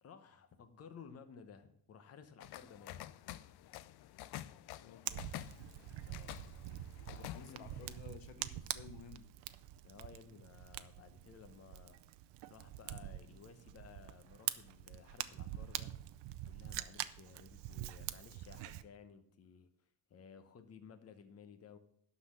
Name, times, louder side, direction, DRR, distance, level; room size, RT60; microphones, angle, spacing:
voice 1, 0.0-3.0 6.1-6.5 7.1-7.6 9.8-12.0 12.5-16.0 16.5-19.7 20.1-21.8, left 6 dB, 35° left, 0.9 m, -56 dB
sound 1, 2.4-8.0, left 14 dB, 60° left, 0.5 m, -49 dB
voice 2, 4.8-5.3 7.1-9.3, left 8 dB, 90° left, 0.9 m, -54 dB
Fire, 5.1-18.8, right 14 dB, 65° right, 0.6 m, -45 dB
11.5 x 4.1 x 7.4 m
cardioid pair, 160°, 45 cm